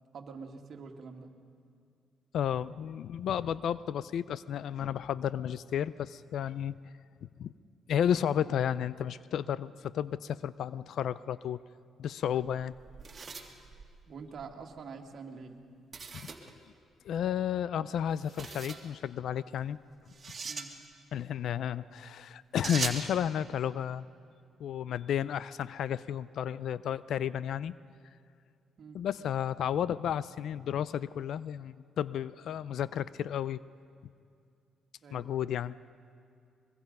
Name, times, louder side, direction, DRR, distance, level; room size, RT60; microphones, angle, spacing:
voice 1, 0.1-1.3 8.4-8.6 14.1-15.6 20.5-20.8 28.8-29.0 35.0-35.3, right 5 dB, 55° right, 3 dB, 2.0 m, -46 dB
voice 2, 2.3-6.8 7.2-7.5 7.9-11.6 12.0-12.7 16.1-16.3 17.0-19.8 21.1-24.1 24.6-27.7 28.9-33.6 35.1-35.7, left 9 dB, 70° left, 18 dB, 0.4 m, -32 dB
sound 1, 12.4-14.5 15.9-16.5 18.2-18.9 20.1-20.7 22.6-23.1, right 5 dB, 35° right, 2.1 m, -39 dB
23.0 x 22.0 x 5.4 m, 2.4 s
cardioid pair, 90°, 0 cm